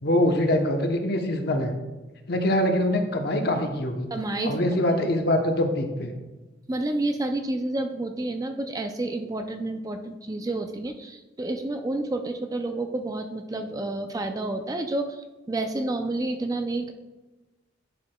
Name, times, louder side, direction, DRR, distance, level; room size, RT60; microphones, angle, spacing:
voice 1, 0.0-1.8 2.3-4.1 4.4-6.1, left 1 dB, 55° left, 4 dB, 0.9 m, -24 dB
voice 2, 4.1-4.6 6.7-16.9, right 2 dB, 20° right, 6 dB, 0.4 m, -29 dB
11.0 x 6.1 x 2.3 m, 1.1 s
head